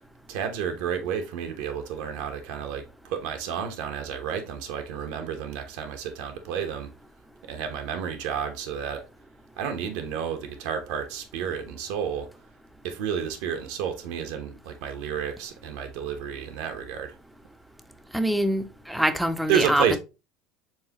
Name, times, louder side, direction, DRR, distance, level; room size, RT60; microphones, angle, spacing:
voice 1, 0.3-6.9 7.4-9.0 9.6-12.3 12.8-17.2 19.5-20.0, right 7 dB, 70° right, 0.9 m, -30 dB
voice 2, 18.1-20.0, equal, ahead, 0.4 m, -24 dB
4.6 x 3.5 x 2.9 m
supercardioid pair, 140°, 0 cm